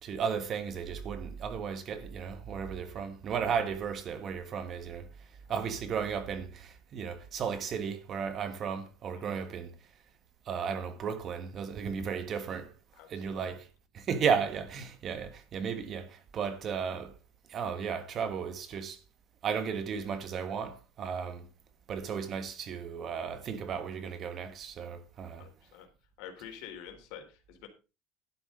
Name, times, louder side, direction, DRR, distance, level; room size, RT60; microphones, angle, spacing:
voice 1, 0.0-5.1 5.5-9.7 10.5-12.7 13.1-13.7 13.9-17.1 17.5-19.0 19.4-21.5 21.9-25.4, right 6 dB, 30° right, 1.5 m, -34 dB
voice 2, 13.0-13.5 25.4-25.9 26.2-27.7, left 9 dB, 65° left, 3.5 m, -48 dB
12.0 x 10.0 x 3.8 m
cardioid pair, 160°, 0 cm